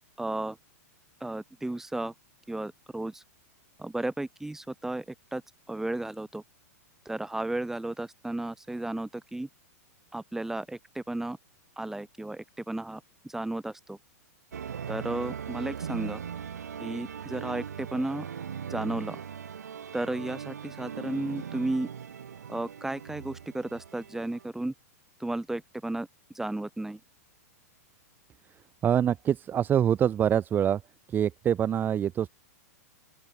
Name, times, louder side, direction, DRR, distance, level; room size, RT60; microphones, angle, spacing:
voice 1, 0.2-0.6 1.2-2.1 2.5-3.2 3.8-5.0 5.3-5.4 5.7-6.4 7.0-9.5 10.1-11.4 11.8-14.0 14.9-16.2 16.8-18.2 18.7-19.2 19.9-21.9 22.5-24.7 25.2-26.1 26.3-27.0, right 2 dB, 5° right, 1.4 m, -33 dB
sound 1, 14.5-24.5, right 8 dB, 80° right, 4.4 m, -39 dB
voice 2, 28.8-30.8 31.1-32.3, right 9 dB, 20° right, 0.6 m, -25 dB
open air
hypercardioid pair, 115°, 9 cm